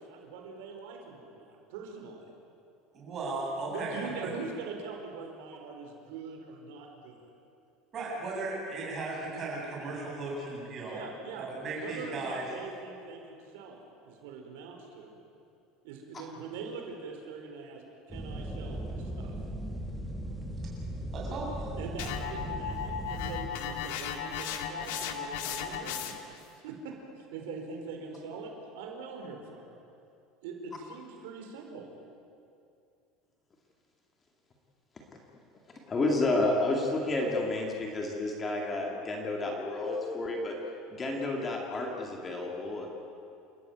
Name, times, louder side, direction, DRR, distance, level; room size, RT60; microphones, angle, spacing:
voice 1, 0.0-2.3 3.6-7.3 10.9-11.5 11.8-13.8 14.0-15.2 15.8-17.8 18.1-19.4 21.8-26.2 26.6-29.8 30.4-31.9, right 4 dB, 85° right, 2 dB, 4.6 m, -43 dB
voice 2, 2.9-4.3 7.9-11.0 11.4-12.4 21.1-21.8, right 2 dB, 25° right, -4 dB, 8.0 m, -36 dB
sound 1, 18.1-23.5, right 1 dB, ahead, 2.2 m, -38 dB
sound 2, 22.0-26.4, left 8 dB, 80° left, 1.9 m, -36 dB
voice 3, 35.9-40.6 40.9-42.9, left 2 dB, 20° left, 0 dB, 2.4 m, -30 dB
29.0 x 14.0 x 9.3 m, 2.6 s
cardioid pair, 170°, 0 cm